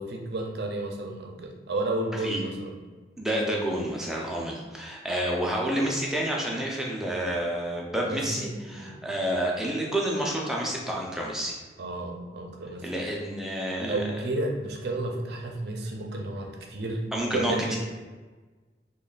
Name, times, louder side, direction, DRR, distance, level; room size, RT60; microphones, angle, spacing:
voice 1, 0.0-2.7 8.0-9.0 11.8-13.1 13.8-17.8, right 2 dB, 65° right, 2 dB, 0.5 m, -32 dB
voice 2, 3.2-11.5 12.8-13.9 17.1-17.8, right 1 dB, 5° right, -2 dB, 0.4 m, -29 dB
3.1 x 2.2 x 3.9 m, 1.3 s
head